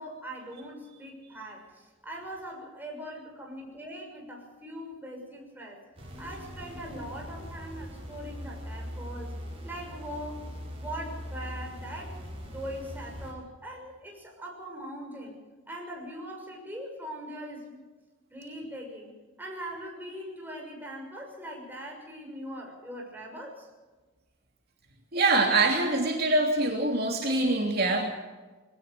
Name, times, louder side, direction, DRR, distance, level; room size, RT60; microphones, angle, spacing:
voice 1, 0.0-5.8 6.2-9.3 9.6-10.4 10.8-12.2 12.4-15.4 15.7-17.9 18.3-23.7, equal, 10° right, 0 dB, 6.5 m, -41 dB
sound 1, 6.0-13.3, equal, 30° right, 7.2 m, -41 dB
voice 2, 25.1-28.1, right 2 dB, 55° right, 0 dB, 3.0 m, -24 dB
22.5 x 18.5 x 6.8 m, 1.3 s
head